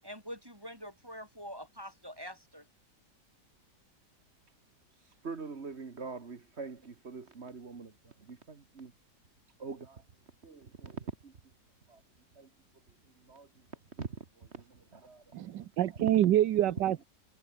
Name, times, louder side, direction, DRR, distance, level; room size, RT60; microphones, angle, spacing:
voice 1, 0.0-2.6, equal, 10° right, 7.5 m, -45 dB
voice 2, 5.2-8.9 9.6-10.0 10.4-11.3 11.9-12.0 12.3-12.5 13.2-13.5 13.9-15.3 16.1-16.2, right 4 dB, 40° right, 1.7 m, -43 dB
voice 3, 15.3-17.0, right 12 dB, 80° right, 1.5 m, -26 dB
omnidirectional pair, 1.9 m